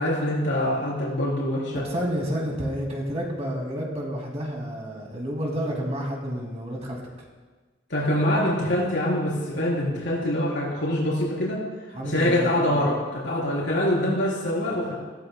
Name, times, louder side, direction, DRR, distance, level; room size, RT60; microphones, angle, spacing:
voice 1, 0.0-1.8 7.9-11.6 12.0-14.9, left 1 dB, 75° left, -5 dB, 3.9 m, -24 dB
voice 2, 1.7-7.0 11.9-12.8, equal, 35° right, -1 dB, 2.3 m, -30 dB
17.0 x 14.0 x 2.2 m, 1.3 s
head